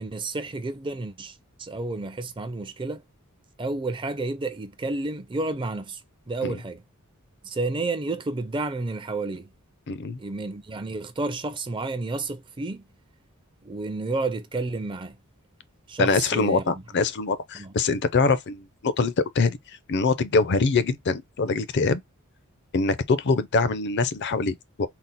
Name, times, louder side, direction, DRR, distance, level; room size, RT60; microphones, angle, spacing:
voice 1, 0.0-3.0 3.6-6.0 6.3-6.8 7.4-9.5 10.2-12.8 13.6-15.2 15.9-16.8 17.5-17.7, right 3 dB, 20° right, 0.4 m, -31 dB
voice 2, 9.9-10.2 16.0-19.6 19.9-22.0 22.7-24.9, left 4 dB, 50° left, 0.5 m, -24 dB
4.1 x 2.0 x 4.0 m
head